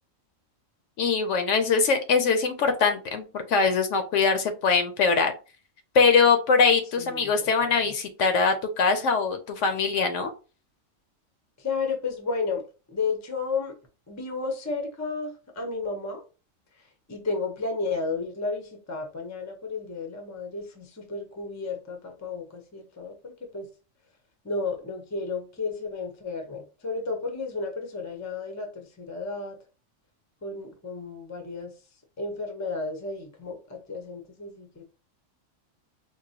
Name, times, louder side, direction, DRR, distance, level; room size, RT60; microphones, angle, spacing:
voice 1, 1.0-5.3 5.9-10.3, left 5 dB, 70° left, 0.9 m, -22 dB
voice 2, 7.0-7.9 11.6-12.6 12.9-13.8 14.1-16.2 16.7-23.7 24.4-29.6 30.4-31.7 32.2-34.8, left 4 dB, 20° left, 0.5 m, -33 dB
4.6 x 2.2 x 2.7 m
omnidirectional pair, 1.4 m